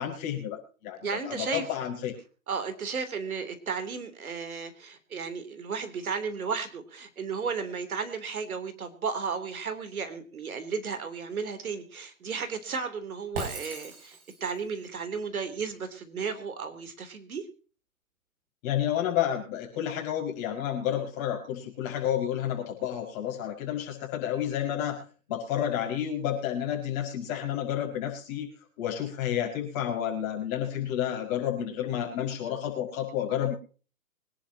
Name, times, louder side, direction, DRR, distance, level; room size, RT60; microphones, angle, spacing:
voice 1, 0.0-1.0 1.2-2.1 18.6-25.0 25.3-28.5 28.8-33.5, left 10 dB, 25° left, 1 dB, 5.6 m, -30 dB
voice 2, 1.0-1.6 2.5-17.4, right 5 dB, 80° right, 9 dB, 3.5 m, -34 dB
Shatter, 13.3-14.6, right 2 dB, 40° right, 6.9 m, -38 dB
24.5 x 11.0 x 2.9 m, 0.37 s
hypercardioid pair, 160°, 42 cm